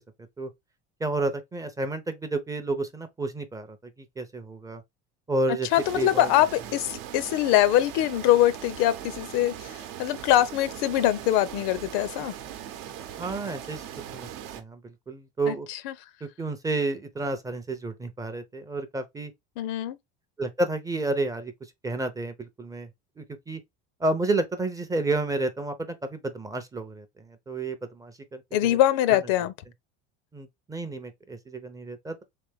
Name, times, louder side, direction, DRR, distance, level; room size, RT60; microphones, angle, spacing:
voice 1, 1.0-4.8 5.3-5.7 5.9-6.3 13.2-13.9 14.1-14.3 14.5-15.7 16.2-19.3 20.4-22.9 23.2-23.6 24.0-28.8 29.1-29.2 30.3-32.2, right 2 dB, 10° right, 0.4 m, -31 dB
voice 2, 5.7-12.3 15.5-15.9 19.6-20.0 28.5-29.5, left 13 dB, 75° left, 0.6 m, -23 dB
sound 1, 5.7-14.6, right 10 dB, 80° right, 0.8 m, -40 dB
3.3 x 3.3 x 3.4 m
cardioid pair, 140°, 29 cm